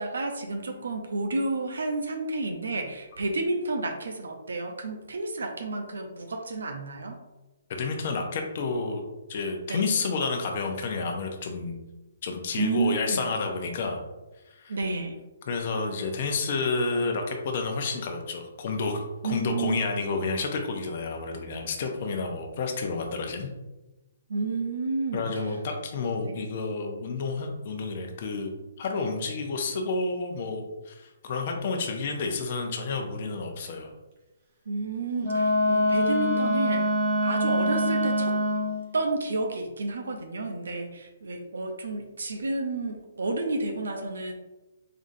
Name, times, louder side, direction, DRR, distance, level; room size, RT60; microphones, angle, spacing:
voice 1, 0.0-7.2 9.7-9.9 12.6-13.2 14.7-15.2 19.2-19.8 24.3-25.4 26.2-26.3 34.7-36.9 37.2-38.3 38.9-44.3, right 3 dB, 85° right, 5 dB, 0.5 m, -30 dB
voice 2, 7.7-9.0 9.3-11.7 12.2-14.0 14.5-14.8 15.5-23.5 25.1-28.5 28.8-33.9, left 4 dB, 50° left, 3 dB, 0.7 m, -30 dB
Wind instrument woodwind instrument, 35.2-38.9, left 1 dB, 40° right, 1.1 m, -24 dB
3.7 x 3.7 x 2.7 m, 1.1 s
hypercardioid pair, 155°, 0 cm